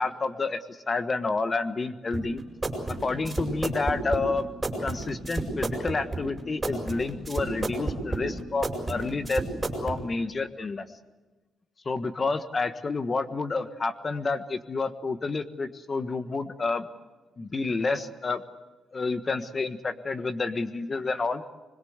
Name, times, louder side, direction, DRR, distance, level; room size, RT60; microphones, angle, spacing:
voice 1, 0.0-2.4 3.0-4.5 4.8-9.4 9.8-10.9 11.8-16.9 17.4-18.4 18.9-21.4, left 3 dB, 30° left, 10 dB, 1.4 m, -29 dB
sound 1, 2.1-10.0, right 2 dB, 15° right, 5.4 m, -32 dB
25.0 x 22.0 x 8.1 m, 1.2 s
cardioid pair, 125°, 0 cm